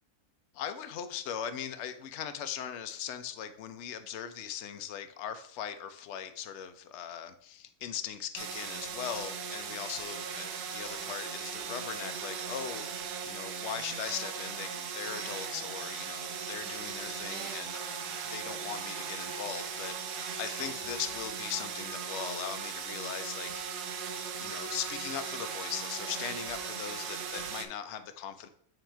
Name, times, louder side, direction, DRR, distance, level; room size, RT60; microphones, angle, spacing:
voice 1, 0.5-23.5 23.8-24.0 24.4-28.5, left 9 dB, 65° left, 9 dB, 0.7 m, -39 dB
sound 1, 8.4-27.7, right 7 dB, 85° right, 1.2 m, -38 dB
7.8 x 2.9 x 4.4 m, 0.63 s
omnidirectional pair, 1.6 m